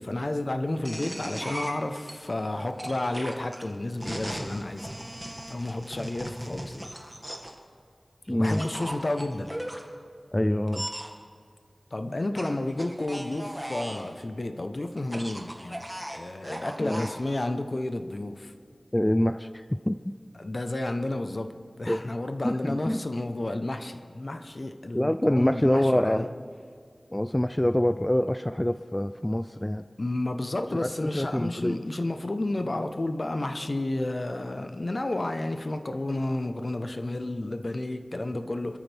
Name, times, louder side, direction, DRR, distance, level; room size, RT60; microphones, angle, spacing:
voice 1, 0.0-4.9 5.5-6.9 8.3-9.5 11.9-18.5 20.4-26.3 30.0-38.8, left 2 dB, 55° left, 8 dB, 1.0 m, -31 dB
sound 1, 0.8-2.1 2.8-7.6 8.4-9.8 10.7-11.1 12.4-14.1 15.0-17.2, equal, 10° right, 2.1 m, -37 dB
voice 2, 8.3-8.6 10.3-10.9 16.8-17.1 18.9-20.0 21.9-22.0 22.4-23.0 24.9-26.3 27.1-29.8 30.8-31.8, left 1 dB, 15° left, 11 dB, 0.4 m, -25 dB
25.5 x 13.5 x 3.5 m, 2.1 s
wide cardioid pair, 45°, 0 cm